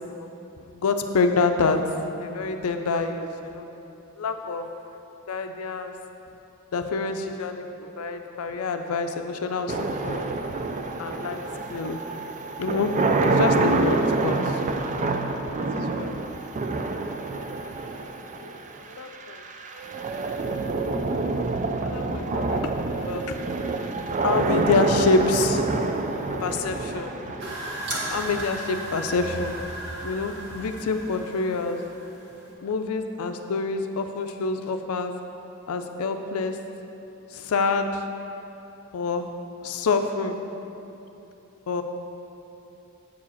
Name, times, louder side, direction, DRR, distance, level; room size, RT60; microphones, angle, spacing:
voice 1, 0.7-1.8 2.2-3.6 4.2-4.7 5.3-5.9 6.7-10.3 11.0-11.4 11.7-12.0 12.6-12.9 13.2-14.6 15.7-16.2 18.3-18.5 18.9-19.5 21.2-23.5 24.2-25.6 26.3-27.1 27.5-27.6 28.1-29.6 30.0-31.8 32.6-35.1 35.7-36.6 37.3-38.0 38.9-39.3 39.6-40.4 41.7-41.8, left 4 dB, 75° left, 6 dB, 0.4 m, -27 dB
sound 1, 9.7-28.7, right 3 dB, 35° right, 0.4 m, -27 dB
sound 2, 27.4-32.5, right 1 dB, 55° right, 1.4 m, -35 dB
7.4 x 4.8 x 7.1 m, 2.9 s
head